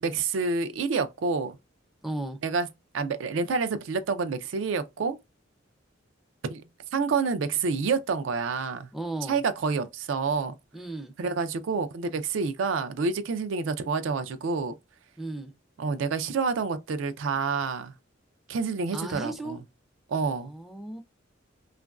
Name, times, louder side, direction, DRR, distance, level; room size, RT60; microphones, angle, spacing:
voice 1, 0.0-1.6 2.4-2.7 2.9-5.2 6.4-6.6 6.9-8.9 9.3-10.5 11.2-14.7 15.8-17.9 18.5-19.6 20.1-20.5, right 4 dB, 75° right, 0.4 m, -28 dB
voice 2, 2.0-2.4 8.9-9.4 10.7-11.1 15.2-15.5 18.9-19.6 20.3-21.0, right 2 dB, ahead, 0.4 m, -35 dB
2.9 x 2.4 x 2.2 m
head